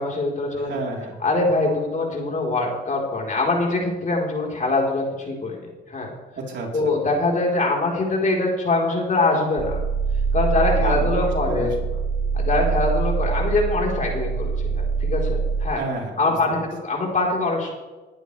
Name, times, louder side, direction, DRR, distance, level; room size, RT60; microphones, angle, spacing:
voice 1, 0.0-0.8 1.2-5.6 5.9-6.1 6.7-9.8 10.3-11.8 12.3-15.8 16.2-17.7, left 2 dB, 40° left, -1 dB, 4.3 m, -23 dB
voice 2, 0.5-1.2 6.4-6.9 10.7-12.0 15.7-16.2 16.5-16.6, right 3 dB, 65° right, -2 dB, 4.1 m, -31 dB
sound 1, 9.6-15.7, right 5 dB, 85° right, 1.5 m, -24 dB
20.5 x 11.0 x 3.5 m, 1.2 s
cardioid pair, 90°, 20 cm